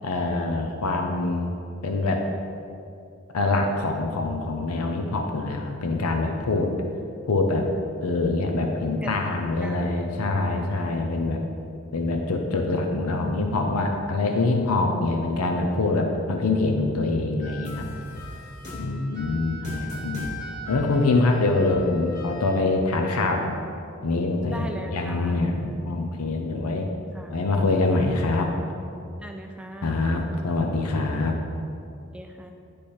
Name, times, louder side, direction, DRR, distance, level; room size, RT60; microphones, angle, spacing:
voice 1, 0.0-1.5 1.8-2.3 3.3-6.7 7.3-7.7 8.0-11.4 11.9-17.9 18.7-20.3 20.7-23.5 24.0-26.9 27.3-28.5 29.8-31.3, left 2 dB, 85° left, 3 dB, 0.6 m, -24 dB
voice 2, 9.0-9.8 24.4-25.6 27.1-27.3 29.2-30.1 32.1-32.5, right 1 dB, 5° right, 3 dB, 0.3 m, -39 dB
sound 1, 17.4-22.5, left 1 dB, 30° left, 1.4 m, -37 dB
9.9 x 3.3 x 4.3 m, 2.5 s
head